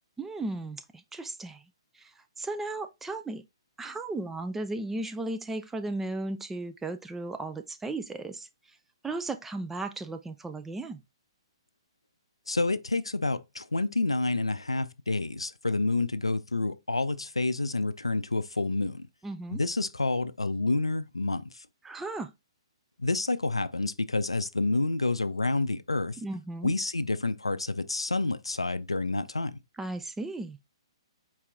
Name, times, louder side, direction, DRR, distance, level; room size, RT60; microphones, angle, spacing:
voice 1, 0.2-1.6 1.9-3.4 3.8-8.5 9.0-11.0 19.2-19.6 21.8-22.3 26.2-26.7 29.8-30.6, right 2 dB, 10° right, 0.3 m, -35 dB
voice 2, 12.5-19.1 19.5-21.7 23.0-26.2 26.6-29.6, left 2 dB, 90° left, 0.4 m, -29 dB
4.6 x 2.9 x 3.5 m
figure-of-eight pair, 125°, 3 cm